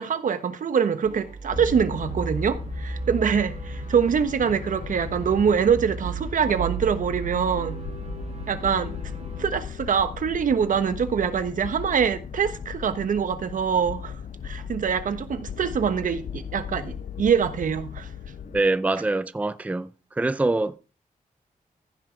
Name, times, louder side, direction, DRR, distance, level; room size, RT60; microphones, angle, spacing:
voice 1, 0.0-7.8 8.5-9.0 9.4-14.2 14.4-18.1, right 7 dB, 70° right, 1.3 m, -24 dB
sound 1, 1.0-9.4, right 4 dB, 50° right, 1.6 m, -35 dB
sound 2, 1.5-18.6, left 8 dB, 70° left, 0.7 m, -37 dB
voice 2, 18.5-19.9 20.2-20.8, right 2 dB, 10° right, 0.5 m, -24 dB
15.0 x 6.0 x 4.7 m
wide cardioid pair, 130°, 14 cm